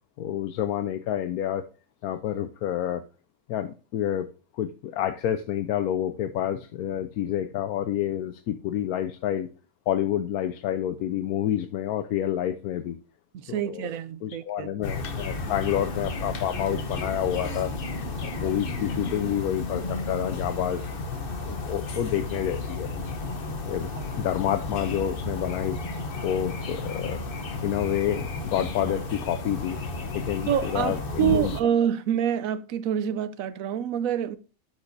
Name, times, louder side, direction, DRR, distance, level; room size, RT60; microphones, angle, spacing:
voice 1, 0.2-1.6 2.0-3.0 3.5-4.3 4.5-9.5 9.9-13.0 13.5-13.9 14.2-17.7 18.2-20.9 21.5-22.9 23.6-23.9 24.2-25.8 26.2-27.2 27.6-29.8 30.1-31.5, left 11 dB, 85° left, 1.1 m, -28 dB
voice 2, 13.3-14.7 23.9-24.0 30.5-34.4, right 9 dB, 70° right, 1.0 m, -27 dB
sound 1, 14.8-31.6, left 3 dB, 45° left, 0.9 m, -33 dB
12.5 x 4.6 x 2.6 m
omnidirectional pair, 1.6 m